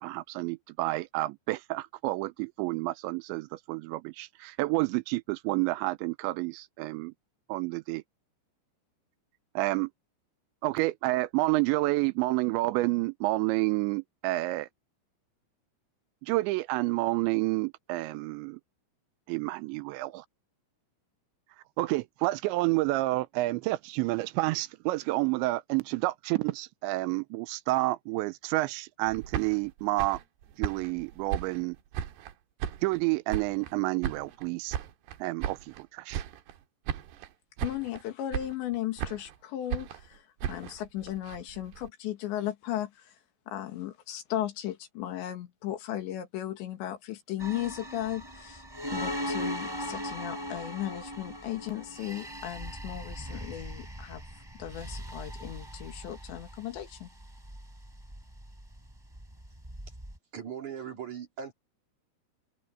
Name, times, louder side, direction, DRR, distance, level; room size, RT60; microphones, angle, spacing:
voice 1, 0.0-7.1 7.5-8.0 9.6-9.9 10.6-14.7 16.2-18.6 19.3-20.3 21.8-30.2 30.6-31.8 32.8-34.8 35.2-36.2, right 20 dB, 85° right, 2.8 m, -29 dB
sound 1, 29.1-32.3 32.6-33.7 34.0-35.8 36.1-36.6 36.9-37.3 37.6-38.0 38.3-39.4 39.7-41.9, right 10 dB, 70° right, 3.2 m, -36 dB
voice 2, 37.6-43.1 43.5-48.6 48.9-54.2 54.6-57.1, left 12 dB, 75° left, 4.1 m, -36 dB
sound 2, 47.4-60.2, equal, 5° right, 3.8 m, -39 dB
voice 3, 60.3-61.5, right 8 dB, 45° right, 4.2 m, -39 dB
open air
omnidirectional pair, 5.4 m